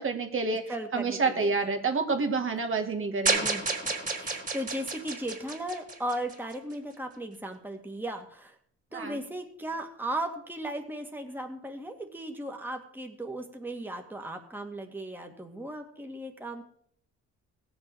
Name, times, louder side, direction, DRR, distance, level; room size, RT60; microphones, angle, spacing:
voice 1, 0.0-0.6 0.9-3.5 8.9-9.2, right 4 dB, 45° right, 5 dB, 2.1 m, -28 dB
voice 2, 0.7-1.5 3.3-8.6 8.9-16.6, right 1 dB, 5° right, 3 dB, 2.1 m, -37 dB
sound 1, 3.3-6.5, right 3 dB, 25° right, 3.5 m, -30 dB
17.5 x 7.0 x 7.0 m, 0.66 s
cardioid pair, 90°, 30 cm